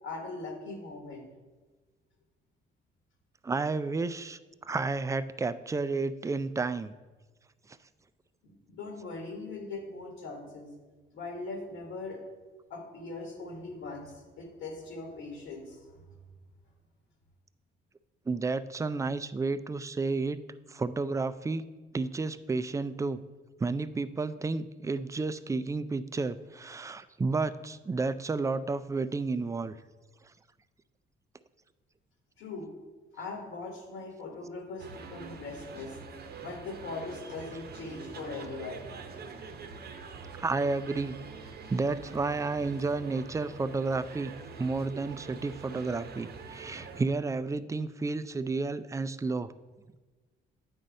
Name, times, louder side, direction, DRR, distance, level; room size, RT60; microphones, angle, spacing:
voice 1, 0.0-1.3 8.4-10.7 11.1-12.2 12.7-15.8 32.4-32.7 33.1-35.9 36.4-38.9, left 3 dB, 85° left, 0 dB, 1.6 m, -40 dB
voice 2, 3.4-6.9 18.3-20.4 20.7-21.7 21.9-23.2 23.6-29.7 40.4-41.2 41.7-44.3 44.6-49.5, right 3 dB, 15° right, 13 dB, 0.3 m, -31 dB
sound 1, 34.8-47.0, right 4 dB, 50° right, 0.8 m, -45 dB
8.8 x 4.1 x 5.2 m, 1.3 s
cardioid pair, 90°, 20 cm